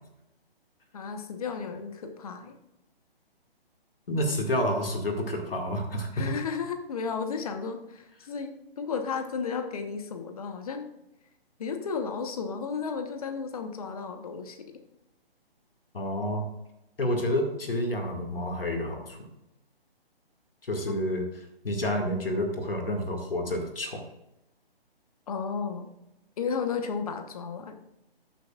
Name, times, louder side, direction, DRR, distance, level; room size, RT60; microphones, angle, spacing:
voice 1, 0.9-2.6 6.1-10.9 11.6-14.8 20.9-21.0 25.3-25.9 26.4-27.7, left 5 dB, 35° left, 7 dB, 1.2 m, -33 dB
voice 2, 4.1-6.3 15.9-16.4 17.0-19.2 20.6-21.2 21.6-24.0, left 1 dB, 65° left, 3 dB, 2.2 m, -29 dB
14.0 x 9.3 x 2.5 m, 0.90 s
figure-of-eight pair, 140°, 31 cm